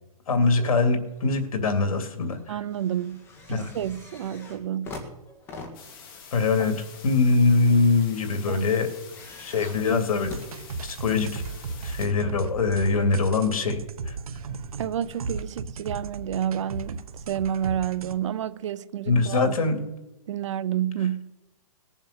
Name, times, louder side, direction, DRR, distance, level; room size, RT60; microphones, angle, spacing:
voice 1, 0.3-2.5 3.5-3.7 6.3-6.7 7.0-8.9 9.4-10.3 10.8-11.4 11.8-13.8 14.1-14.2 19.1-19.8, left 4 dB, 80° left, 2.6 m, -23 dB
sound 1, 0.8-1.5 1.9-11.3 12.0-12.1, left 3 dB, 15° left, 1.7 m, -45 dB
voice 2, 2.5-3.2 3.5-5.0 8.5-8.7 14.8-19.5 20.3-21.3, right 10 dB, 55° right, 0.6 m, -30 dB
sound 2, 5.7-12.1, left 6 dB, 40° left, 2.5 m, -47 dB
sound 3, 10.3-18.1, right 4 dB, 80° right, 1.0 m, -36 dB
19.5 x 7.3 x 6.6 m
hypercardioid pair, 165°, 18 cm